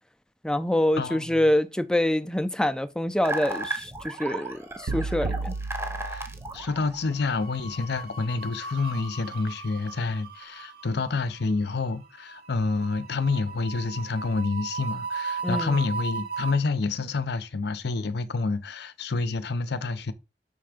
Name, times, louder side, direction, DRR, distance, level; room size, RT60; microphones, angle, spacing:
voice 1, 0.4-5.6 15.4-15.8, left 1 dB, 5° left, 0.5 m, -25 dB
voice 2, 1.0-1.3 6.1-6.3 6.5-20.1, left 3 dB, 65° left, 0.6 m, -28 dB
sound 1, 3.2-7.5, right 2 dB, 15° right, 0.9 m, -34 dB
sound 2, 4.5-5.3 5.6-5.8 7.0-16.6, right 4 dB, 60° right, 0.9 m, -37 dB
sound 3, 4.9-7.0, right 3 dB, 75° right, 0.5 m, -33 dB
6.4 x 3.5 x 5.0 m
head